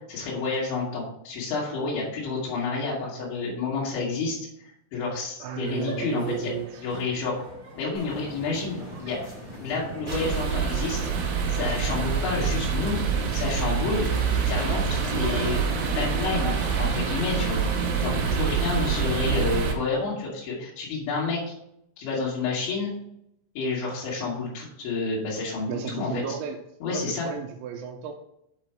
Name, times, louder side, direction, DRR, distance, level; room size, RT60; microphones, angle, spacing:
voice 1, 0.1-4.4 4.9-6.5 6.8-7.4 7.8-9.2 9.6-11.1 11.5-13.0 13.3-15.6 15.9-17.6 18.0-21.4 22.0-22.9 23.6-26.4 26.8-27.3, left 4 dB, 75° left, -7 dB, 4.4 m, -29 dB
voice 2, 5.4-7.0 25.7-26.6 26.9-28.1, right 8 dB, 85° right, -1 dB, 3.1 m, -34 dB
sound 1, 5.7-16.9, right 2 dB, 50° right, 2.1 m, -43 dB
sound 2, 7.9-16.8, left 1 dB, 25° left, 1.0 m, -40 dB
sound 3, 10.1-19.7, right 6 dB, 65° right, 3.2 m, -26 dB
8.5 x 4.9 x 4.5 m, 0.77 s
omnidirectional pair, 5.4 m